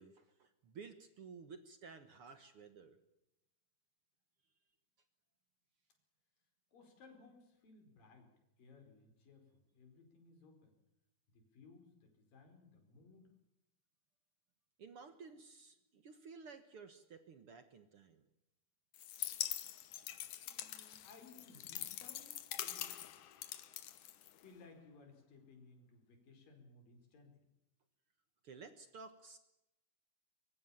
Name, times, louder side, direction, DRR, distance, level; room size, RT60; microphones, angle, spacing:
voice 1, 0.0-3.0 14.8-18.3 28.4-29.4, right 5 dB, 55° right, 10 dB, 1.8 m, -54 dB
voice 2, 6.7-10.7 11.3-13.4 20.4-23.0 24.4-27.5, left 4 dB, 85° left, 4 dB, 6.4 m, -61 dB
sound 1, 18.9-24.7, left 12 dB, 70° left, 2.6 m, -44 dB
23.5 x 23.0 x 7.2 m, 0.90 s
omnidirectional pair, 3.9 m